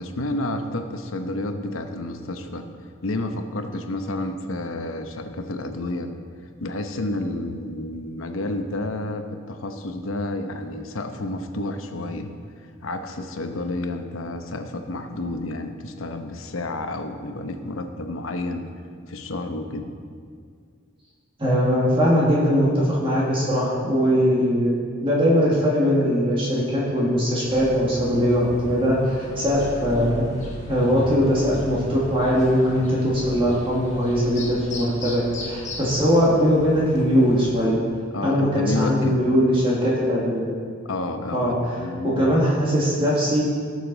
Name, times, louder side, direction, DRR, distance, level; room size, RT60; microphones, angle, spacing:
voice 1, 0.0-2.6 3.0-6.1 6.6-12.3 12.8-18.6 19.1-19.9 36.1-36.2 38.1-39.3 40.9-42.2, left 2 dB, 90° left, 6 dB, 0.9 m, -30 dB
voice 2, 21.4-30.2 30.7-37.8 38.2-40.4 41.3-41.7 42.0-43.4, equal, 25° right, -6 dB, 1.8 m, -21 dB
sound 1, 27.5-37.7, left 1 dB, 35° left, 1.3 m, -37 dB
18.0 x 6.6 x 4.0 m, 2.1 s
head